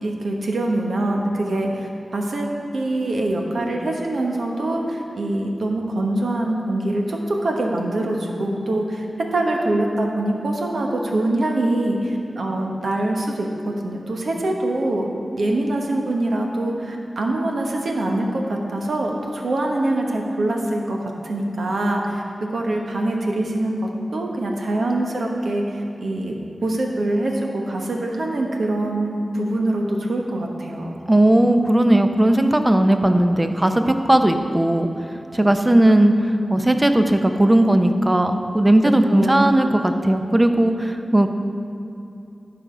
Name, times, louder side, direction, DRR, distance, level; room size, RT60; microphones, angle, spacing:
voice 1, 0.0-9.0 9.3-15.1 15.4-23.8 24.1-26.4 26.6-30.9 39.1-39.5, right 1 dB, 80° right, 0 dB, 1.1 m, -24 dB
voice 2, 31.1-34.9 35.3-36.1 36.5-41.3, right 1 dB, 25° right, 7 dB, 0.6 m, -17 dB
11.5 x 4.9 x 5.0 m, 2.7 s
cardioid pair, 50°, 0 cm